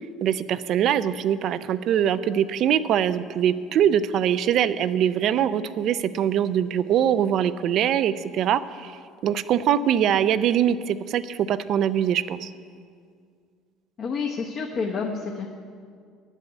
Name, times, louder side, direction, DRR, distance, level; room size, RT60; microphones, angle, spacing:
voice 1, 0.2-8.9 9.2-12.5, right 9 dB, 50° right, 15 dB, 0.4 m, -23 dB
voice 2, 14.0-15.5, left 5 dB, 35° left, 0 dB, 0.9 m, -29 dB
10.5 x 8.2 x 8.1 m, 2.2 s
cardioid pair, 145°, 0 cm